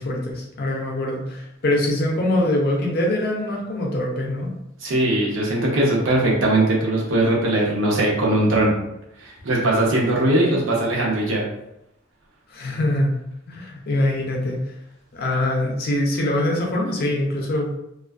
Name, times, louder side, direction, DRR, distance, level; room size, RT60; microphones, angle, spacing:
voice 1, 0.0-4.5 12.5-13.2 13.5-14.6 15.1-17.7, left 1 dB, 50° left, -1 dB, 0.5 m, -23 dB
voice 2, 4.8-8.7 9.2-11.4, right 1 dB, 75° right, -3 dB, 0.7 m, -20 dB
2.4 x 2.3 x 2.3 m, 0.81 s
head